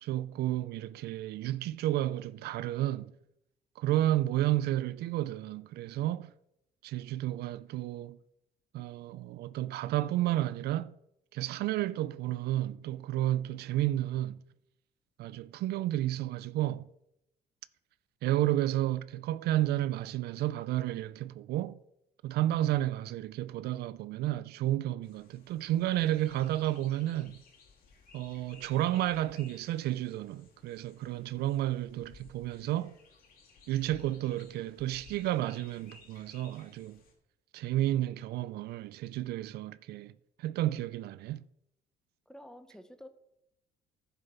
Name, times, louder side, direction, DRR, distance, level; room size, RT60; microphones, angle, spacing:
voice 1, 0.0-3.1 3.8-6.3 6.8-8.2 8.7-10.9 11.3-14.4 15.2-16.9 18.2-21.8 22.2-27.4 28.1-32.9 33.7-37.0 37.5-40.1 40.4-41.4, right 14 dB, 70° right, 0.4 m, -31 dB
sound 1, 25.0-37.1, left 4 dB, 55° left, 3.1 m, -58 dB
voice 2, 42.3-43.1, left 1 dB, 5° left, 1.0 m, -49 dB
11.0 x 7.0 x 5.6 m
cardioid pair, 110°, 17 cm